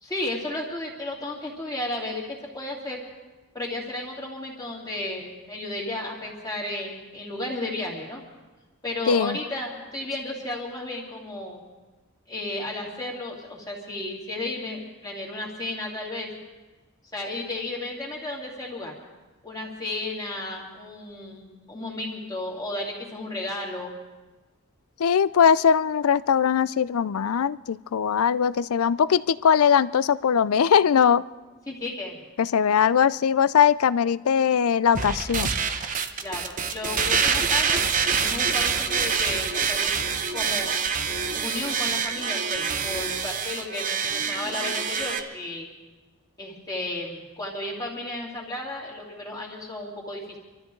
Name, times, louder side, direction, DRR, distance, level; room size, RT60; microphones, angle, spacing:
voice 1, 0.0-3.0 3.5-8.2 8.8-11.6 12.3-16.3 17.1-18.9 19.4-23.9 31.7-32.2 36.2-37.8 38.2-39.9 40.3-40.8 41.3-45.7 46.4-50.4, left 2 dB, 15° left, -2 dB, 2.7 m, -33 dB
voice 2, 9.1-9.4 25.0-31.2 32.4-35.5, left 7 dB, 80° left, 18 dB, 0.4 m, -21 dB
sound 1, 34.9-45.2, right 6 dB, 35° right, 0.8 m, -26 dB
26.5 x 13.5 x 3.8 m, 1.2 s
head